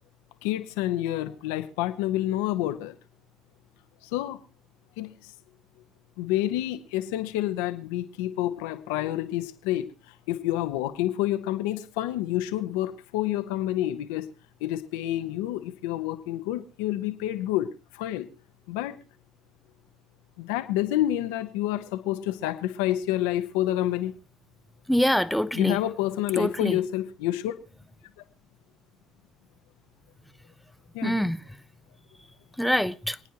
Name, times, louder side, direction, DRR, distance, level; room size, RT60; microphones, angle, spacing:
voice 1, 0.4-2.9 4.0-4.4 5.0-5.3 6.2-14.3 14.6-18.3 18.7-19.0 20.4-24.1 25.5-27.5 30.9-31.2, left 14 dB, 80° left, 1.2 m, -28 dB
voice 2, 24.9-25.8 26.3-26.8 31.0-31.4 32.6-33.2, equal, ahead, 0.8 m, -25 dB
27.5 x 9.4 x 3.0 m
hypercardioid pair, 70°, 0 cm